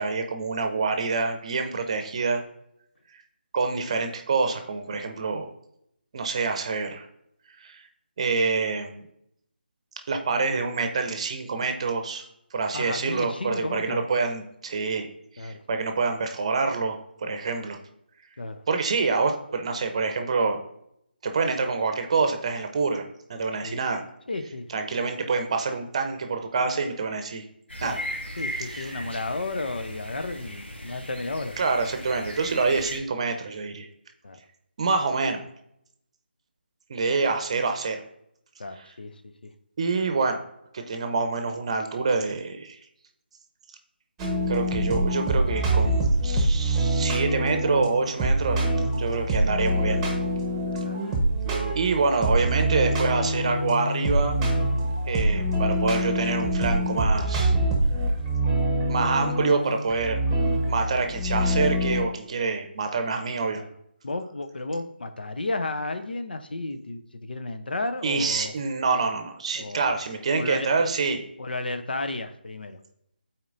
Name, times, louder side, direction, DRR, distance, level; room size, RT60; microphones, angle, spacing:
voice 1, 0.0-2.4 3.5-5.5 6.1-7.1 7.6-7.8 8.2-9.0 10.1-12.3 12.5-15.1 15.4-17.8 18.7-20.6 21.2-23.0 23.3-24.0 24.7-27.4 27.8-28.0 28.5-29.0 31.6-33.9 34.8-35.4 36.9-38.0 39.8-40.4 40.7-42.8 44.5-48.7 49.0-50.0 51.7-54.4 55.1-57.6 58.9-60.3 60.7-63.6 68.0-71.2, right 4 dB, 35° right, 6 dB, 0.8 m, -26 dB
voice 2, 12.7-14.1 15.4-15.6 18.4-18.6 23.6-23.8 24.3-24.7 27.8-31.6 32.4-32.5 34.2-34.4 38.6-39.5 50.8-51.1 63.5-63.7 64.0-68.5 69.6-70.0 70.3-70.7 71.4-72.8, left 2 dB, 60° left, 8 dB, 0.7 m, -33 dB
sound 1, 27.7-33.0, equal, 80° left, 1.7 m, -37 dB
sound 2, 44.2-62.0, right 1 dB, 10° right, 1.0 m, -25 dB
12.0 x 4.4 x 2.6 m, 0.76 s
figure-of-eight pair, 155°, 6 cm